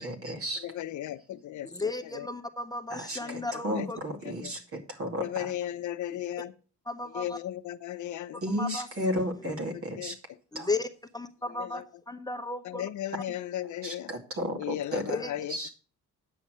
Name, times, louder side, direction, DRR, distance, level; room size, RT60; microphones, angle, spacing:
voice 1, 0.0-0.6 2.9-5.2 8.4-10.1 10.5-10.7 13.8-15.0 15.5-15.7, equal, 50° right, 4 dB, 2.5 m, -33 dB
voice 2, 0.6-2.3 3.2-3.9 4.2-4.5 5.2-6.5 7.1-8.4 9.4-10.4 11.6-11.8 12.6-14.1 14.6-15.7, left 12 dB, 75° left, 12 dB, 0.7 m, -36 dB
voice 3, 1.7-4.0 6.9-7.4 8.5-8.9 9.4-9.5 10.5-10.9 11.1-12.8 15.1-15.3, left 3 dB, 15° left, 7 dB, 0.9 m, -34 dB
9.1 x 6.5 x 6.2 m, 0.37 s
cardioid pair, 90°, 30 cm